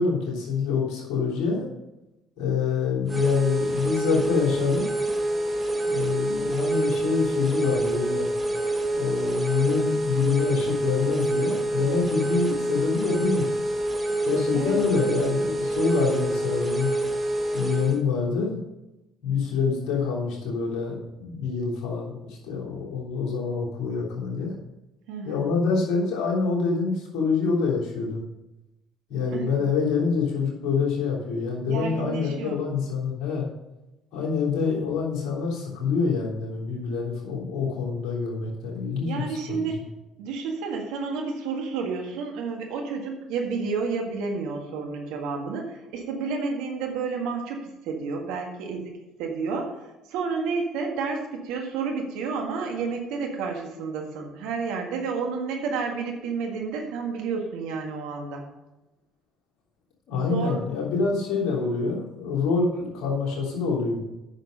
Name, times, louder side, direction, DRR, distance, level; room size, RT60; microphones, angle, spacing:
voice 1, 0.0-1.7 2.4-4.9 5.9-8.3 8.9-13.5 14.2-16.9 17.5-18.6 19.2-24.5 25.2-28.2 29.1-33.5 34.1-39.8 60.1-64.0, left 5 dB, 65° left, -3 dB, 3.3 m, -26 dB
sound 1, 3.1-18.0, right 1 dB, 15° right, 1.7 m, -26 dB
voice 2, 25.1-25.5 29.3-29.4 31.7-32.6 39.1-39.7 40.2-48.9 49.2-58.4 60.1-60.6, right 4 dB, 70° right, 2 dB, 1.8 m, -30 dB
9.1 x 6.6 x 5.3 m, 0.98 s
hypercardioid pair, 55°, 0 cm